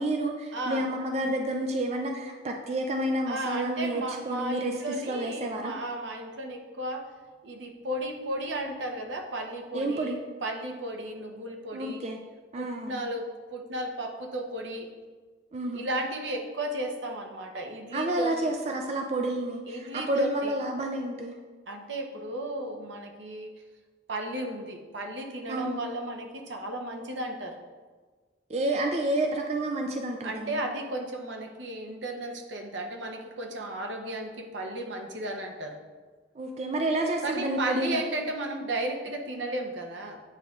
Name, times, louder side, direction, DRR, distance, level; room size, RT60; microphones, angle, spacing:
voice 1, 0.0-5.7 9.7-10.2 11.7-12.2 12.5-13.0 15.5-15.8 17.9-21.3 25.5-25.8 28.5-30.6 36.4-38.0, right 1 dB, 35° right, 3 dB, 0.3 m, -30 dB
voice 2, 0.5-0.9 3.3-7.1 7.4-12.1 12.6-14.9 15.7-18.4 19.7-20.6 21.7-23.5 24.1-27.6 30.2-35.8 37.2-40.2, right 1 dB, 80° right, 3 dB, 0.8 m, -34 dB
8.8 x 5.0 x 2.4 m, 1.4 s
head